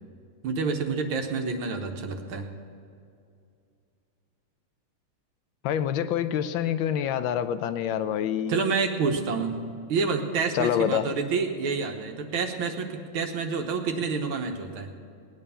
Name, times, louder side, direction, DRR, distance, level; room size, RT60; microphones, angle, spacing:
voice 1, 0.4-2.5 8.5-14.9, right 4 dB, 75° right, 5 dB, 1.9 m, -28 dB
voice 2, 5.6-8.5 10.5-11.0, left 9 dB, 75° left, 12 dB, 1.3 m, -26 dB
19.0 x 9.5 x 5.6 m, 2.4 s
omnidirectional pair, 2.3 m